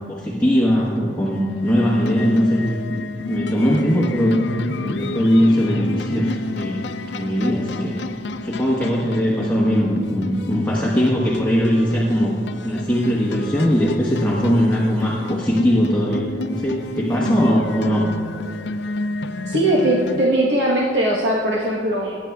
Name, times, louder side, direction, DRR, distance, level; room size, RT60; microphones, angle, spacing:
voice 1, 0.1-4.4 4.7-8.0 8.4-12.3 12.6-18.1, equal, 10° left, -5 dB, 1.1 m, -20 dB
sound 1, 0.9-20.3, left 2 dB, 75° left, 0.5 m, -30 dB
voice 2, 19.5-22.2, right 1 dB, 85° right, -4 dB, 1.2 m, -19 dB
19.0 x 9.7 x 2.3 m, 2.3 s
head